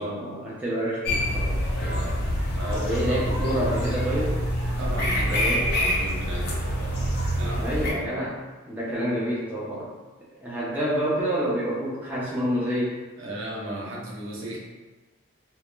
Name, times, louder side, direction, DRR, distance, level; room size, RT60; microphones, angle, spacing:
voice 1, 0.0-2.0 2.7-4.4 5.3-5.6 7.6-8.4 8.7-9.9 10.4-13.0, equal, 10° right, -7 dB, 0.4 m, -28 dB
sound 1, 1.0-7.9, equal, 50° left, 0.4 m, -26 dB
voice 2, 1.9-2.3 2.6-3.5 4.8-7.7 8.1-8.2 13.2-14.6, right 1 dB, 65° right, -4 dB, 0.5 m, -36 dB
2.1 x 2.0 x 3.0 m, 1.3 s
head